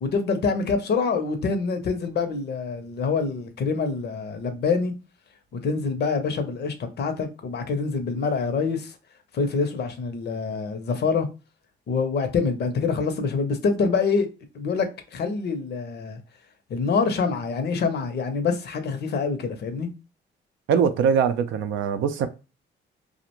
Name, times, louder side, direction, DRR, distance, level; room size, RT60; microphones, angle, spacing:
voice 1, 0.0-4.9 5.6-9.0 9.3-11.3 11.9-14.3 14.5-14.9 15.1-16.2 16.7-19.9, left 5 dB, 55° left, 0.6 m, -25 dB
voice 2, 20.7-22.3, right 7 dB, 80° right, 0.4 m, -22 dB
2.4 x 2.1 x 2.9 m
cardioid pair, 90°, 20 cm